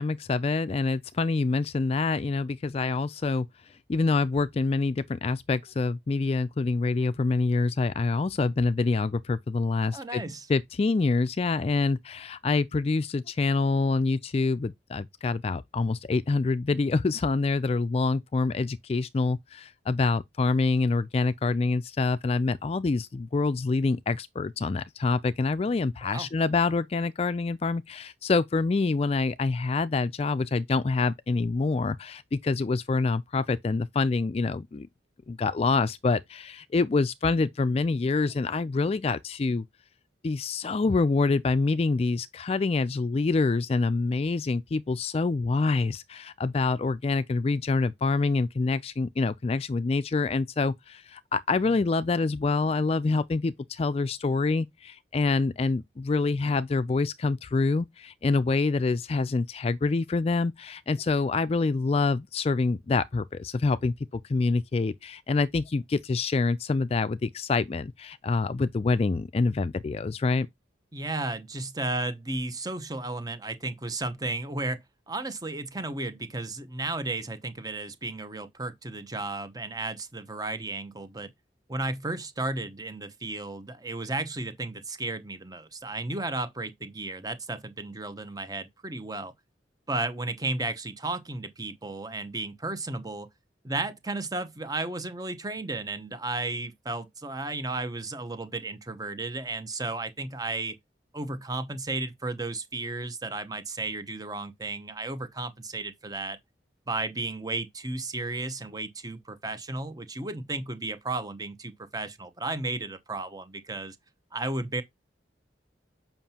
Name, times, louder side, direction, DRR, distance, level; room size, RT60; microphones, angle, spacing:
voice 1, 0.0-3.5 3.9-10.2 10.5-34.9 35.3-39.6 40.2-63.9 64.3-70.5, left 3 dB, 35° left, 0.3 m, -26 dB
voice 2, 9.9-10.5 26.0-26.3 70.9-81.3 81.7-89.3 89.9-93.3 93.6-100.8 101.1-106.4 106.9-114.0 114.3-114.8, right 2 dB, 20° right, 0.9 m, -34 dB
7.3 x 5.7 x 2.8 m
head